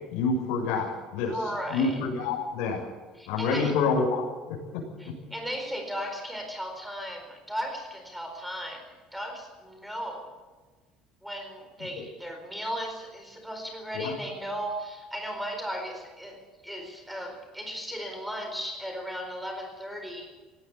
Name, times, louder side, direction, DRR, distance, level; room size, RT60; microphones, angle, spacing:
voice 1, 0.1-1.4 1.7-2.8 3.3-4.2 4.5-5.2 14.0-14.1, left 4 dB, 80° left, -1 dB, 7.0 m, -27 dB
voice 2, 1.3-2.0 3.1-3.8 5.0-10.4 11.2-20.3, equal, ahead, 4 dB, 4.4 m, -36 dB
18.5 x 17.0 x 8.2 m, 1.3 s
cardioid pair, 155°, 0 cm